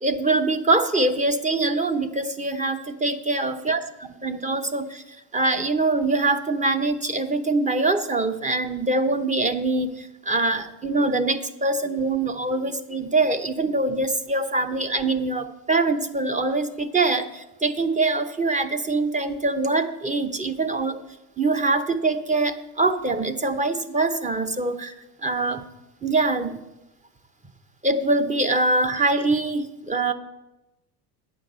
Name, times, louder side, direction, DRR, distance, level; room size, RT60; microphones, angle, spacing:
voice 1, 0.0-5.0 5.3-21.0 21.4-24.9 25.2-25.6 26.0-26.6 27.8-30.1, right 2 dB, 15° right, 8 dB, 0.8 m, -24 dB
9.4 x 5.9 x 7.9 m, 0.96 s
supercardioid pair, 100°, 46 cm